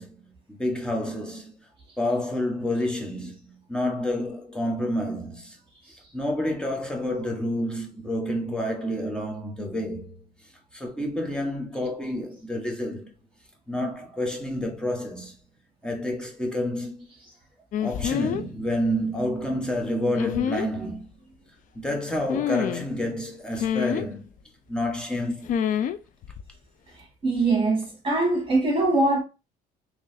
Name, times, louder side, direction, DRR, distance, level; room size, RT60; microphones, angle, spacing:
voice 1, 0.0-1.5 2.0-5.6 6.1-10.2 10.7-13.1 13.7-15.3 15.8-17.1 17.8-21.1 21.7-24.3 24.7-25.5, left 1 dB, 5° left, 1.0 m, -29 dB
sound 1, 17.7-18.5 20.1-20.7 22.3-22.9 23.6-24.1 25.5-26.0 26.2-26.5, left 9 dB, 50° left, 0.4 m, -26 dB
voice 2, 27.2-29.2, right 2 dB, 30° right, 1.5 m, -22 dB
3.8 x 3.1 x 2.6 m
cardioid pair, 110°, 17 cm